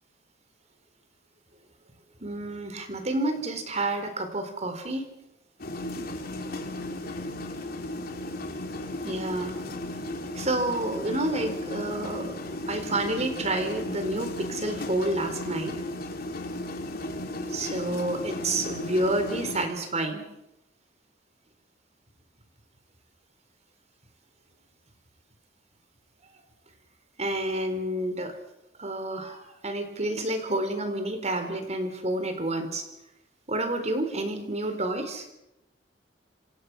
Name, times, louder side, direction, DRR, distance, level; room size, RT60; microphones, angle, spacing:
voice 1, 2.2-5.1 9.0-9.6 10.3-12.4 12.7-15.7 17.5-20.3 27.2-28.3 28.8-32.8 33.5-35.3, right 1 dB, 40° right, 7 dB, 4.2 m, -29 dB
sound 1, 5.6-19.7, left 1 dB, 55° left, 3.6 m, -35 dB
27.5 x 26.0 x 6.2 m, 0.90 s
head